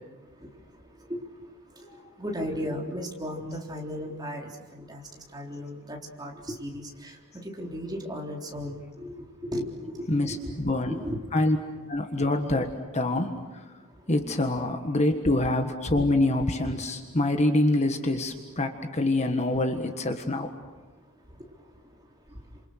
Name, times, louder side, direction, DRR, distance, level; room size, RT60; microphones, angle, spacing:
voice 1, 2.2-7.2 7.4-9.1 9.4-10.5 10.9-11.2, equal, 20° right, 0 dB, 3.8 m, -35 dB
voice 2, 10.1-11.0 11.3-11.6 11.9-13.3 14.1-20.5, left 2 dB, 30° left, 5 dB, 1.5 m, -25 dB
29.5 x 27.5 x 6.5 m, 1.2 s
head